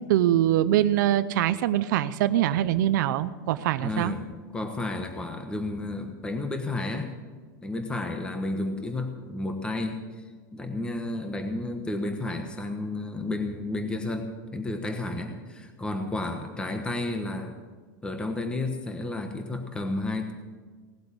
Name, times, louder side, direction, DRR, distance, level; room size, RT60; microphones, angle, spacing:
voice 1, 0.0-4.1, right 12 dB, 75° right, 12 dB, 0.6 m, -23 dB
voice 2, 3.8-7.1 7.6-17.6 18.0-20.3, left 2 dB, 10° left, 5 dB, 1.2 m, -32 dB
18.0 x 7.9 x 8.4 m, 1.5 s
supercardioid pair, 140°, 10 cm